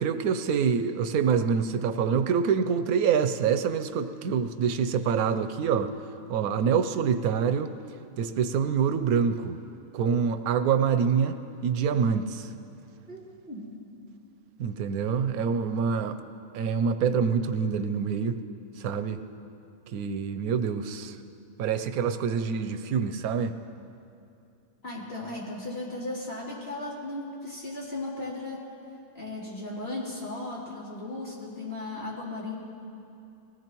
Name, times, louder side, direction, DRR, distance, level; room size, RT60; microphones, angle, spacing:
voice 1, 0.0-5.9 6.3-7.7 8.2-9.6 9.9-12.5 14.6-16.2 16.5-18.3 18.8-19.2 19.9-21.2 21.6-23.5, right 6 dB, 85° right, 9 dB, 1.1 m, -26 dB
voice 2, 13.1-13.8 24.8-28.6 29.1-32.5, left 2 dB, 45° left, -7 dB, 3.4 m, -36 dB
21.5 x 17.5 x 3.0 m, 2.6 s
omnidirectional pair, 1.5 m